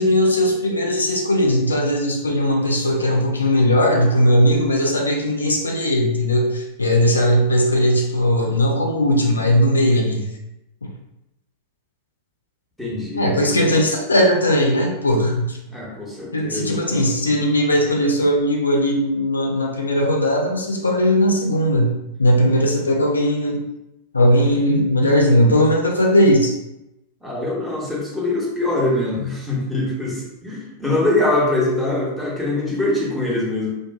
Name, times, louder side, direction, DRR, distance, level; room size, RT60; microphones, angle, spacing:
voice 1, 0.0-10.3 13.1-15.6 16.3-23.6 24.1-26.5, equal, 75° left, 1 dB, 0.3 m, -18 dB
voice 2, 12.8-13.6 15.7-17.0 27.2-33.7, left 2 dB, 5° right, -5 dB, 0.8 m, -23 dB
2.5 x 2.2 x 2.2 m, 0.89 s
figure-of-eight pair, 90°, 0 cm